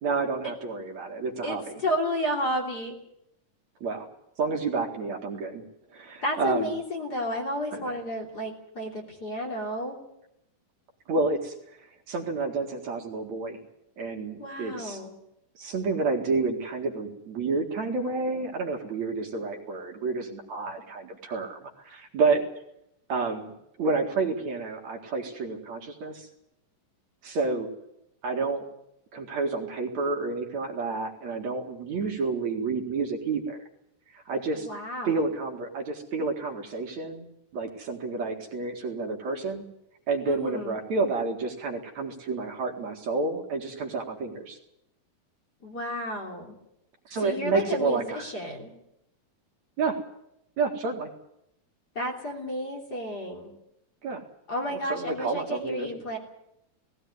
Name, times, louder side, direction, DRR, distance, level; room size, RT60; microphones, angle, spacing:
voice 1, 0.0-1.6 3.8-4.1 4.4-5.6 5.9-6.7 7.7-7.9 11.1-11.5 12.1-13.6 14.0-15.0 15.6-22.4 23.1-23.5 23.8-26.3 27.2-27.7 28.2-28.6 29.1-33.6 34.3-34.7 35.0-37.3 37.5-39.6 40.1-44.6 47.1-48.3 49.8-50.0 50.6-51.1 54.0-54.2 54.7-56.0, right 4 dB, 60° right, 2 dB, 3.2 m, -29 dB
voice 2, 1.4-3.0 6.2-10.0 14.4-15.1 34.6-35.2 40.3-40.8 45.6-46.5 47.2-48.7 52.0-53.5 54.5-56.2, equal, 30° left, -1 dB, 3.5 m, -32 dB
18.5 x 16.5 x 9.6 m, 0.81 s
omnidirectional pair, 3.8 m